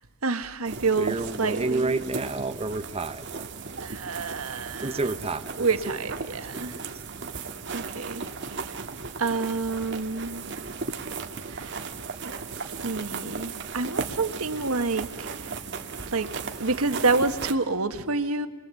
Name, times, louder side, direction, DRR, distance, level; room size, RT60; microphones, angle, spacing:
voice 1, 0.2-2.0 3.8-5.0 5.6-6.7 7.7-8.2 8.5-8.7 9.2-10.4 11.5-11.8 12.2-12.3 12.8-15.3 16.1-16.3 16.6-18.5, right 3 dB, 90° right, 9 dB, 1.5 m, -28 dB
sound 1, 0.6-17.5, right 4 dB, 55° right, 1.7 m, -36 dB
voice 2, 1.0-3.4 4.8-6.0 6.5-6.7, right 2 dB, 25° right, 8 dB, 0.8 m, -30 dB
28.5 x 23.0 x 8.3 m, 1.2 s
head